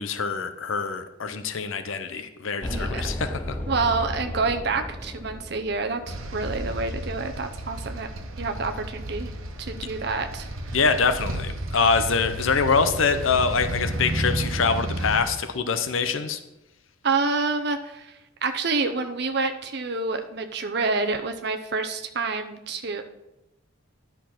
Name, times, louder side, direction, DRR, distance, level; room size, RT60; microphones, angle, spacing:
voice 1, 0.0-3.6 10.7-16.4, left 5 dB, 75° left, 10 dB, 0.7 m, -24 dB
sound 1, 2.6-6.9, left 1 dB, 10° left, 0.5 m, -34 dB
voice 2, 2.7-3.0 3.7-8.1 8.4-9.3 9.6-10.8 17.0-23.0, right 4 dB, 55° right, 6 dB, 0.7 m, -28 dB
sound 2, 6.1-15.2, right 1 dB, 85° right, 1.1 m, -32 dB
10.5 x 4.6 x 5.8 m, 0.92 s
head